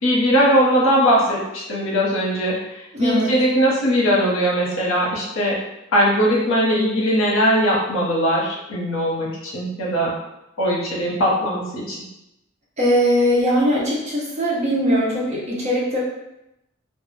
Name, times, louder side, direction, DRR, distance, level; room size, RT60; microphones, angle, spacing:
voice 1, 0.0-5.6 5.9-10.1 10.6-12.0, equal, 75° left, -3 dB, 0.7 m, -20 dB
voice 2, 2.9-3.3 12.8-16.0, equal, 30° right, -4 dB, 0.6 m, -20 dB
2.2 x 2.0 x 3.0 m, 0.88 s
head